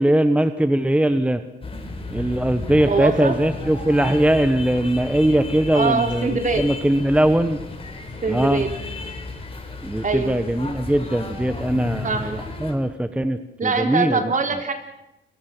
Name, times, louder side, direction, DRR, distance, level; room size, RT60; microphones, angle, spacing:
voice 1, 0.0-1.4 2.1-7.6 8.3-8.6 9.8-14.2, right 1 dB, 5° right, 10 dB, 1.2 m, -20 dB
sound 1, 1.6-12.7, left 2 dB, 30° left, 5.8 m, -33 dB
voice 2, 2.9-3.4 5.7-6.6 8.2-8.7 10.0-10.3 12.0-12.3 13.6-14.7, right 4 dB, 40° right, 5 dB, 4.1 m, -23 dB
28.0 x 22.5 x 6.2 m, 0.90 s
cardioid pair, 90°, 20 cm